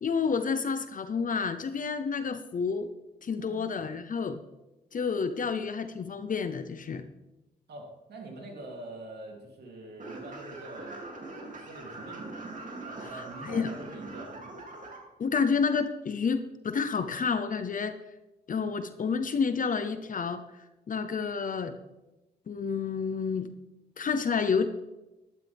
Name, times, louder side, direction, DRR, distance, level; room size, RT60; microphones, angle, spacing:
voice 1, 0.0-2.9 3.2-4.4 4.9-7.0 13.1-13.7 15.2-18.0 18.5-20.4 20.9-21.7 22.5-23.5 24.0-24.7, left 5 dB, 50° left, 10 dB, 0.8 m, -29 dB
voice 2, 3.4-3.7 7.7-11.0 11.5-12.4 12.8-14.7, right 2 dB, 70° right, 0 dB, 3.1 m, -44 dB
sound 1, 10.0-15.0, right 2 dB, 45° right, 2.9 m, -42 dB
12.5 x 12.0 x 3.5 m, 1.0 s
cardioid pair, 70°, 18 cm